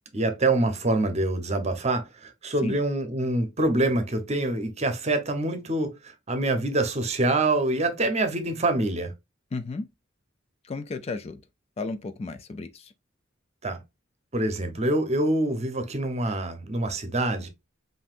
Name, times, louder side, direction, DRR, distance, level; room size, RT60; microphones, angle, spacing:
voice 1, 0.1-6.0 6.3-9.1 13.6-13.8 14.3-17.5, right 2 dB, 35° right, 0.9 m, -25 dB
voice 2, 9.5-9.9 10.6-11.4 11.8-12.9, left 3 dB, 30° left, 0.4 m, -33 dB
5.5 x 2.7 x 2.5 m
head